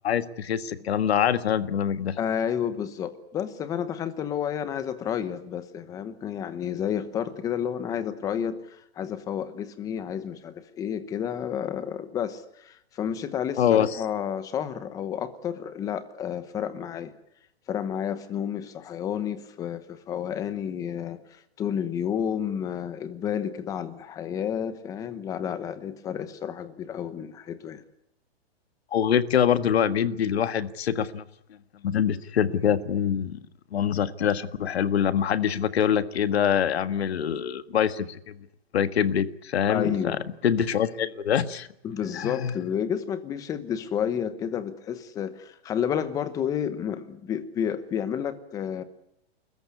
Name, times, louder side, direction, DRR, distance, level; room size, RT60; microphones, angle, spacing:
voice 1, 0.0-2.2 13.6-13.9 28.9-31.2 31.8-33.5 33.7-38.4 38.7-40.2 40.4-41.7 42.1-42.5, left 8 dB, 70° left, 12 dB, 1.7 m, -24 dB
voice 2, 2.2-17.1 17.7-27.8 39.7-40.2 41.8-48.8, left 8 dB, 10° left, 13 dB, 1.0 m, -31 dB
30.0 x 14.5 x 9.6 m, 0.76 s
hypercardioid pair, 175°, 32 cm